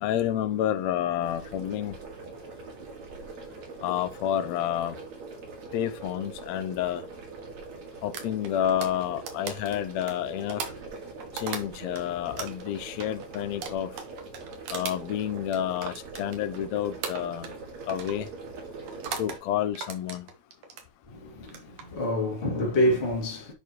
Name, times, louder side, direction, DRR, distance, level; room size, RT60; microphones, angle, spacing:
voice 1, 0.0-2.0 3.8-5.0 5.7-7.0 8.0-10.6 11.3-13.9 14.7-17.5 17.9-18.3 19.2-20.3, left 11 dB, 75° left, 1.9 m, -29 dB
sound 1, 1.2-19.4, right 3 dB, 70° right, 3.3 m, -43 dB
sound 2, 8.1-12.0 12.4-16.6 17.0-17.6 17.9-18.2 18.9-19.4 19.7-20.9 21.4-21.8, right 6 dB, 85° right, 2.8 m, -38 dB
voice 2, 21.1-23.5, left 1 dB, 20° left, 2.1 m, -27 dB
10.5 x 4.6 x 3.1 m
omnidirectional pair, 3.4 m